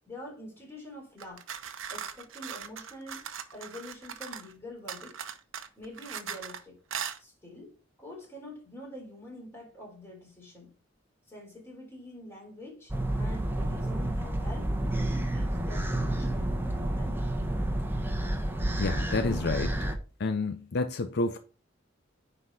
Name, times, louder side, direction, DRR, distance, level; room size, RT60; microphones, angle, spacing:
voice 1, 0.1-1.5 1.9-3.2 3.5-5.1 5.8-6.8 7.2-10.7 11.3-14.7 15.1-17.2, left 1 dB, 15° left, 3.7 m, -46 dB
sound 1, 1.2-4.5 4.9-6.6 6.9-7.2, right 7 dB, 80° right, 0.9 m, -39 dB
sound 2, 12.9-20.0, right 1 dB, 10° right, 1.1 m, -30 dB
voice 2, 18.8-19.8 20.2-21.4, left 3 dB, 55° left, 0.6 m, -29 dB
9.7 x 4.2 x 4.8 m
head